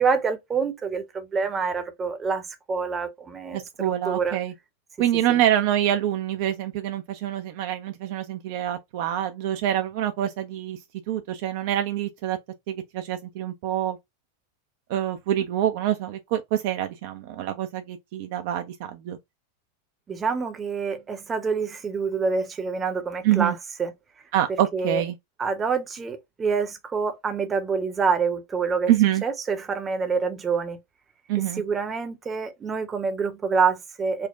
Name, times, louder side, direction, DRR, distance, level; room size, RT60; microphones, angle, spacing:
voice 1, 0.0-4.4 5.3-5.4 20.1-23.9 24.5-25.0 25.4-28.9 29.2-30.8 31.6-34.3, right 5 dB, 20° right, 0.7 m, -27 dB
voice 2, 3.5-4.5 5.0-10.8 11.1-12.4 12.7-14.0 14.9-19.2 23.2-23.5 24.3-25.1 28.9-29.2 31.3-31.6, right 12 dB, 50° right, 0.4 m, -26 dB
4.4 x 2.1 x 2.4 m
figure-of-eight pair, 90°, 0 cm